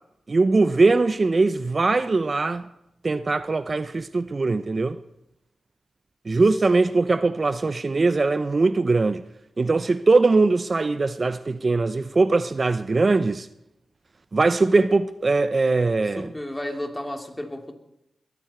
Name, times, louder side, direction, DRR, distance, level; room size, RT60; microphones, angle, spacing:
voice 1, 0.3-2.7 3.0-5.0 6.3-9.2 9.6-13.5 14.3-16.3, right 3 dB, 45° right, 0.7 m, -21 dB
voice 2, 16.1-17.7, left 1 dB, 15° left, 3.1 m, -32 dB
21.5 x 14.0 x 4.5 m
cardioid pair, 45°, 0 cm